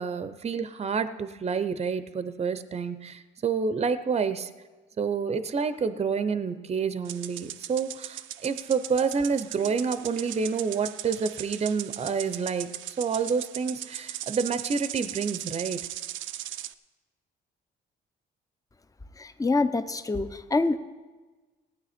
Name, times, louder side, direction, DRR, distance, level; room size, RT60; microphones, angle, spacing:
voice 1, 0.0-4.5 5.0-12.7 13.0-15.8, right 5 dB, 30° right, 12 dB, 0.7 m, -28 dB
sound 1, 7.0-16.7, right 13 dB, 75° right, 0.5 m, -38 dB
voice 2, 19.2-20.8, left 3 dB, 15° left, 12 dB, 0.7 m, -26 dB
17.0 x 9.4 x 4.3 m, 1.3 s
cardioid pair, 90°, 20 cm